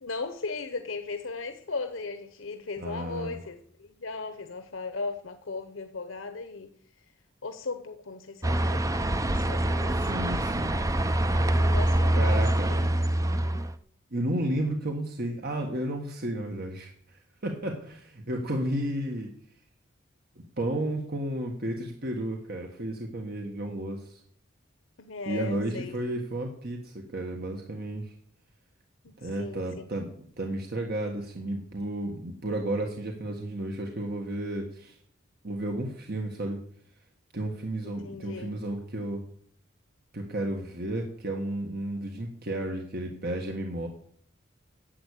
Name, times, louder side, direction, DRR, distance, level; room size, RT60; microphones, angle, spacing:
voice 1, 0.0-6.7 7.4-10.4 11.5-12.9 25.0-26.0 29.0-29.7 37.8-38.5, left 3 dB, 80° left, 8 dB, 1.0 m, -37 dB
voice 2, 2.8-3.4 10.0-10.9 12.2-12.8 14.1-19.3 20.6-24.2 25.3-28.1 29.2-35.0 35.4-36.6 37.3-39.2 40.1-43.9, right 1 dB, 50° right, 2 dB, 1.5 m, -32 dB
sound 1, 8.4-13.7, right 1 dB, 15° right, 0.6 m, -25 dB
11.5 x 8.0 x 8.5 m, 0.63 s
head